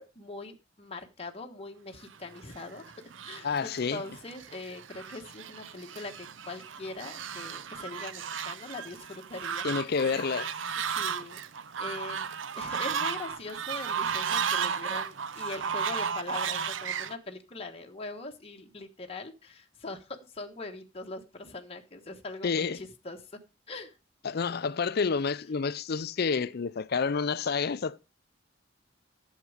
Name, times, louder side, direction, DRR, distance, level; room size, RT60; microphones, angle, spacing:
voice 1, 0.0-2.8 3.2-10.0 10.8-11.4 11.8-12.2 12.5-23.2 23.7-24.0, left 2 dB, 30° left, 1.2 m, -42 dB
Fowl, 2.3-17.2, right 7 dB, 80° right, 0.7 m, -34 dB
voice 2, 3.4-4.0 9.6-10.5 22.4-22.8 24.2-28.0, left 5 dB, 55° left, 0.5 m, -29 dB
11.5 x 7.5 x 5.0 m
head